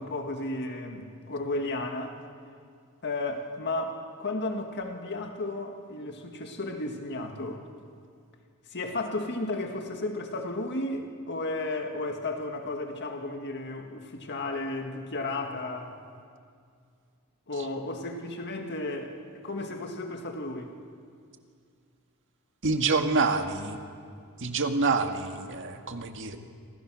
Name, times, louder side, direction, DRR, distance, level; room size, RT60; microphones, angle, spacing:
voice 1, 0.0-2.2 3.0-7.6 8.7-16.0 17.5-19.2 19.4-20.7, left 2 dB, 50° left, 4 dB, 1.9 m, -33 dB
voice 2, 22.6-23.8 24.4-26.4, right 4 dB, 60° right, 5 dB, 1.9 m, -27 dB
28.0 x 26.5 x 6.4 m, 2.2 s
head